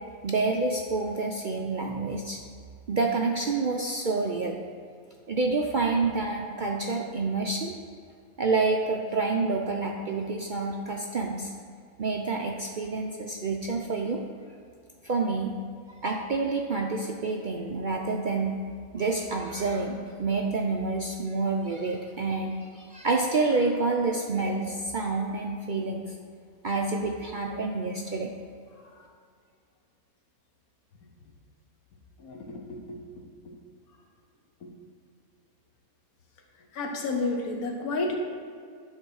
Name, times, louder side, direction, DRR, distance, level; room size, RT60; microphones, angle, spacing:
voice 1, 0.2-2.4 2.9-4.6 5.3-7.7 8.4-11.5 12.0-14.2 15.0-15.5 16.0-18.6 18.9-26.1 26.6-28.3, right 3 dB, 65° right, 1 dB, 0.5 m, -28 dB
voice 2, 28.7-29.0 32.2-33.6 34.6-34.7 36.7-38.2, left 3 dB, 75° left, 2 dB, 1.5 m, -32 dB
11.0 x 3.7 x 6.3 m, 2.2 s
omnidirectional pair, 1.5 m